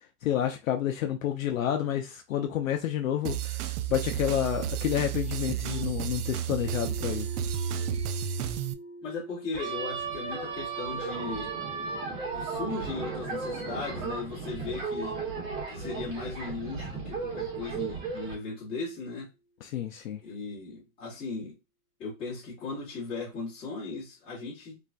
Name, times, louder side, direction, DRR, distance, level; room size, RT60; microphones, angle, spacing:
voice 1, 0.2-7.3 19.6-20.2, left 10 dB, 65° left, 0.5 m, -29 dB
sound 1, 3.2-8.7, right 9 dB, 80° right, 0.5 m, -32 dB
sound 2, 6.6-18.5, right 1 dB, 30° left, 1.4 m, -48 dB
voice 2, 9.0-11.5 12.3-15.2 15.7-19.3 20.2-21.5 22.0-24.8, left 3 dB, 10° left, 1.0 m, -37 dB
sound 3, 9.5-18.3, right 4 dB, 60° right, 1.5 m, -35 dB
3.3 x 2.2 x 2.4 m
hypercardioid pair, 165°, 45 cm